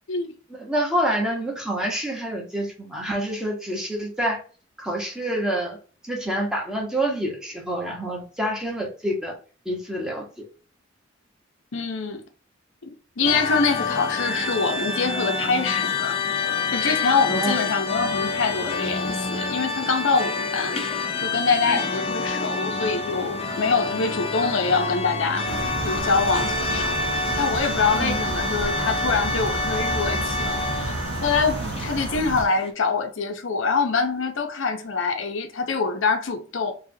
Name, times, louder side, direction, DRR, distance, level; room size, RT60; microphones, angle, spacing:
voice 1, 0.5-4.4 4.8-5.8 6.0-9.3 9.6-10.2 17.3-17.6 21.7-21.8 27.9-28.1 31.6-31.7, right 1 dB, 5° right, 1.1 m, -27 dB
voice 2, 11.7-12.2 13.2-16.1 16.7-20.8 21.2-25.5 25.8-27.0 27.3-36.7, left 4 dB, 90° left, 0.7 m, -25 dB
sound 1, 13.2-32.7, left 3 dB, 30° left, 0.6 m, -28 dB
sound 2, 25.5-32.5, right 2 dB, 75° right, 0.6 m, -31 dB
4.8 x 2.4 x 2.7 m
head